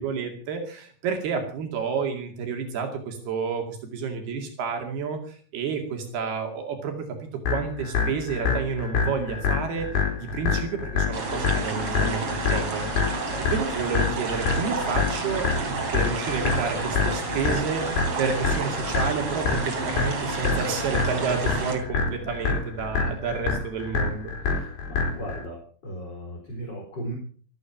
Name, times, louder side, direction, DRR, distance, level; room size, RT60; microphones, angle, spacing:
voice 1, 0.0-9.9 10.2-17.9 18.2-24.3, right 5 dB, 75° right, 4 dB, 4.3 m, -30 dB
sound 1, 7.4-25.4, left 5 dB, 70° left, 5.8 m, -27 dB
sound 2, 11.1-21.8, right 3 dB, 40° right, 3.8 m, -30 dB
voice 2, 24.4-27.2, right 1 dB, 25° left, 1 dB, 4.1 m, -37 dB
15.5 x 14.0 x 5.9 m, 0.44 s
omnidirectional pair, 4.5 m